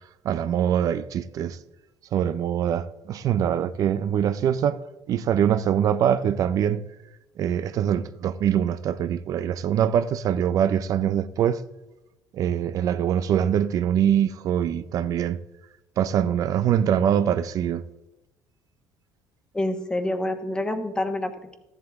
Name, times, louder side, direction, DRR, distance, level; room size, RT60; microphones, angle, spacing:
voice 1, 0.2-1.6 2.1-6.8 7.4-11.6 12.3-15.4 16.0-17.8, right 9 dB, 55° right, 0.5 m, -23 dB
voice 2, 19.5-21.6, left 1 dB, 10° left, 1.3 m, -27 dB
13.0 x 11.0 x 3.6 m
cardioid pair, 120°, 7 cm